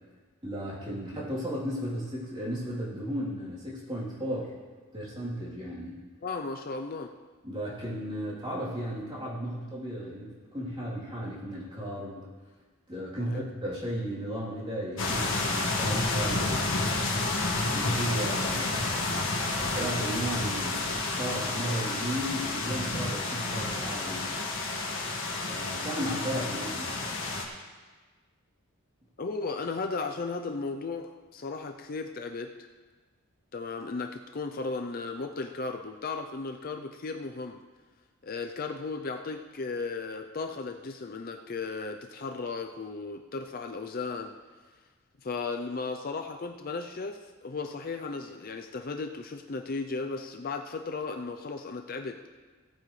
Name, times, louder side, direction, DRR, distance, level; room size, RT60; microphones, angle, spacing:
voice 1, 0.4-4.5 4.9-6.0 7.4-12.2 12.9-16.7 17.7-19.1 19.5-24.3 25.5-27.0, equal, 20° right, -7 dB, 3.2 m, -35 dB
voice 2, 6.2-7.1 13.2-13.5 29.2-32.7 33.5-37.6 38.2-44.3 45.2-52.3, left 4 dB, 40° left, 5 dB, 0.5 m, -35 dB
sound 1, 15.0-27.4, left 2 dB, 60° left, 1.7 m, -30 dB
17.0 x 9.0 x 3.2 m, 1.4 s
head